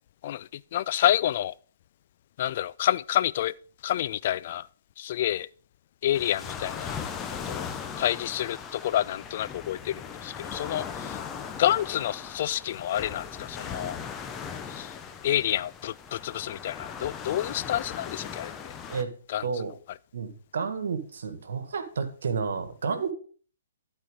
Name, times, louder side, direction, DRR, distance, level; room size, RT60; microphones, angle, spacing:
voice 1, 0.2-1.5 2.4-3.5 3.8-4.7 5.0-5.5 6.0-7.0 7.3-7.7 8.0-11.2 11.6-14.0 14.7-14.9 15.2-18.5 19.3-19.5, left 12 dB, 50° left, 0.3 m, -28 dB
sound 1, 6.1-19.0, left 7 dB, 20° left, 0.8 m, -38 dB
voice 2, 20.1-23.1, right 5 dB, 70° right, 1.4 m, -31 dB
12.5 x 4.4 x 4.9 m
hypercardioid pair, 130°, 0 cm